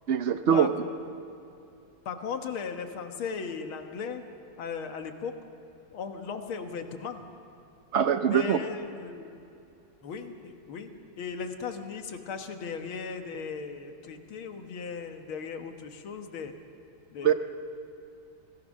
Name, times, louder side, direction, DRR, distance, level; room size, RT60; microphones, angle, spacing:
voice 1, 0.1-0.7 7.9-8.6 17.2-17.3, right 8 dB, 80° right, 9 dB, 0.6 m, -23 dB
voice 2, 2.1-4.2 4.6-5.3 5.9-7.3 8.2-9.4 10.0-10.9 11.2-16.5 17.1-17.3, left 5 dB, 85° left, 6 dB, 2.2 m, -37 dB
27.5 x 17.5 x 6.4 m, 2.7 s
omnidirectional pair, 2.2 m